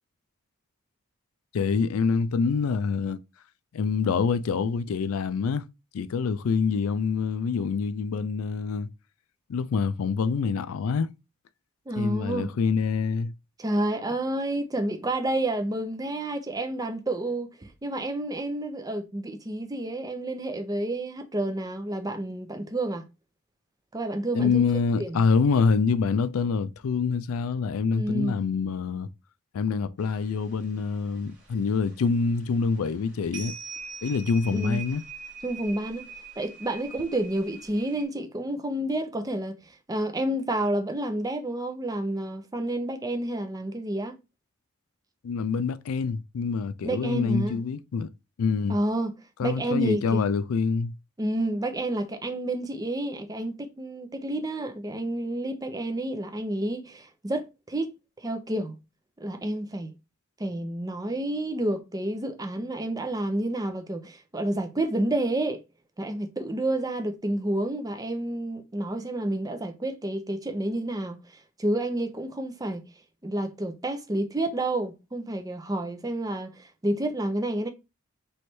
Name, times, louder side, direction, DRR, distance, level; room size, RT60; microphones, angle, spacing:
voice 1, 1.5-3.2 3.7-5.6 5.9-8.9 9.5-11.1 12.0-13.3 24.3-29.1 29.5-33.5 34.0-35.0 45.2-48.1 48.4-48.8 49.4-50.9, left 5 dB, 80° left, 0.4 m, -26 dB
voice 2, 11.9-12.5 13.6-23.1 23.9-24.6 25.0-25.2 27.9-28.4 34.5-34.8 35.4-36.1 36.4-39.6 39.9-44.2 46.8-47.6 48.7-49.1 49.4-50.3 51.2-58.7 59.2-59.9 60.4-65.6 66.0-72.8 73.2-77.7, right 1 dB, 15° right, 0.5 m, -29 dB
sound 1, 30.0-30.9 31.1-31.5 31.8-32.0 32.7-33.0 33.3-38.0, right 5 dB, 55° right, 1.4 m, -42 dB
3.1 x 3.1 x 4.3 m
head